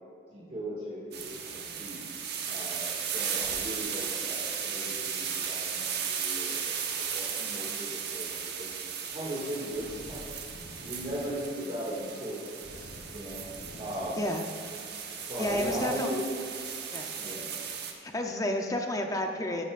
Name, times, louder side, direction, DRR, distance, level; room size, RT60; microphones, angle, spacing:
voice 1, 0.3-2.1 2.5-8.7 9.1-10.2 10.5-13.4 13.8-14.3 15.3-16.2 17.2-17.5, equal, 35° right, -7 dB, 2.1 m, -38 dB
sound 1, 1.1-17.9, right 7 dB, 60° right, 1.1 m, -36 dB
sound 2, 9.1-15.8, equal, 75° left, 1.4 m, -50 dB
voice 2, 15.4-16.1 16.9-17.1 18.0-19.6, left 1 dB, 20° left, 3 dB, 0.7 m, -31 dB
14.0 x 11.0 x 2.5 m, 2.6 s
head